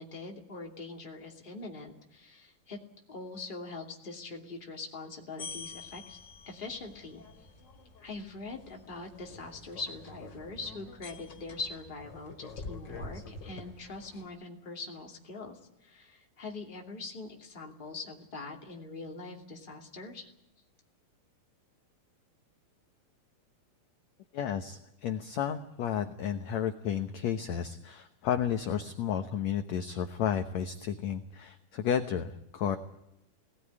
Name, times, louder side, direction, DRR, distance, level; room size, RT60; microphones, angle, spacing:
voice 1, 0.0-2.8 3.1-6.2 6.5-7.5 8.0-20.3, left 3 dB, 15° left, 1 dB, 2.2 m, -43 dB
sound 1, 5.4-14.3, left 3 dB, 35° left, 2.6 m, -47 dB
voice 2, 24.3-32.8, left 8 dB, 65° left, 7 dB, 1.8 m, -32 dB
22.0 x 18.5 x 9.8 m, 0.83 s
omnidirectional pair, 4.3 m